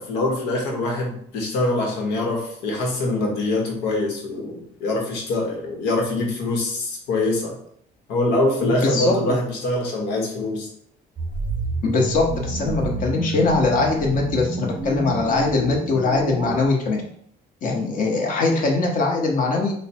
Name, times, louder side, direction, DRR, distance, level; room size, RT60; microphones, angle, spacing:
voice 1, 0.0-7.6 8.1-10.7, left 2 dB, 90° left, 0 dB, 1.1 m, -24 dB
voice 2, 8.6-9.4 11.8-17.0 17.6-19.7, left 3 dB, 55° left, 0 dB, 1.0 m, -21 dB
sound 1, 11.2-16.7, right 2 dB, 30° right, 0.5 m, -29 dB
3.2 x 2.2 x 4.2 m, 0.67 s
cardioid pair, 110°, 17 cm